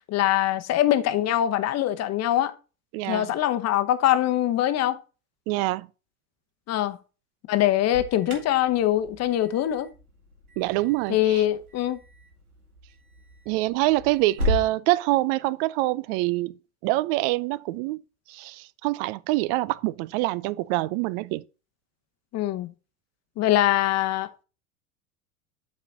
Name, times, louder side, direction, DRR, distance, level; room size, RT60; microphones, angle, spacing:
voice 1, 0.1-2.5 3.1-5.0 6.7-7.0 7.5-9.9 11.1-12.0 22.3-22.7 23.4-24.4, left 13 dB, 35° left, 0.9 m, -23 dB
voice 2, 2.9-3.3 5.5-5.9 10.6-11.4 13.5-16.6 16.8-18.0 18.3-21.4, right 19 dB, 45° right, 0.4 m, -25 dB
Alarm, 7.7-14.7, left 1 dB, 90° right, 2.0 m, -35 dB
8.2 x 4.3 x 4.0 m
hypercardioid pair, 80°, 42 cm